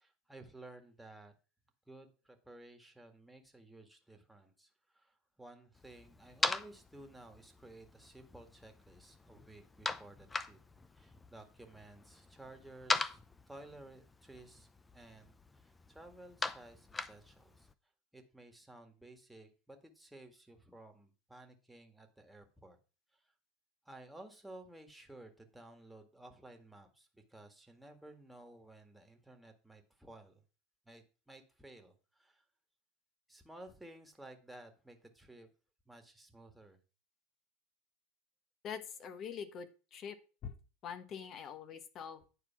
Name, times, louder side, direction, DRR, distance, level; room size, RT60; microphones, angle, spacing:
voice 1, 0.0-1.3 1.9-10.6 10.9-13.2 13.5-17.7 18.1-22.8 23.1-23.3 23.9-30.4 30.9-32.4 33.3-35.5 35.9-36.8, right 1 dB, 5° right, 4 dB, 1.8 m, -55 dB
sound 1, 5.7-17.7, left 3 dB, 15° left, 0.7 m, -42 dB
voice 2, 38.6-40.1 40.4-40.5 40.8-42.2, left 7 dB, 45° left, 9 dB, 1.3 m, -44 dB
9.6 x 4.6 x 5.8 m, 0.34 s
hypercardioid pair, 95°, 0 cm